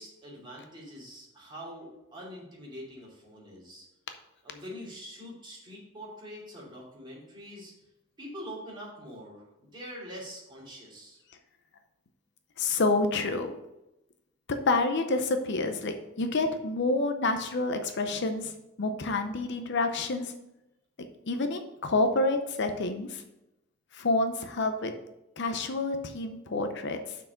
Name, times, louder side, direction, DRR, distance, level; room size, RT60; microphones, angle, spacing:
voice 1, 0.0-3.9 4.4-7.7 8.2-11.2, equal, 25° right, -5 dB, 2.8 m, -44 dB
voice 2, 12.6-13.6 14.5-18.5 18.8-20.3 21.3-23.2 23.9-24.9 25.4-27.2, left 2 dB, 60° left, 7 dB, 0.7 m, -28 dB
6.0 x 4.7 x 6.4 m, 0.92 s
head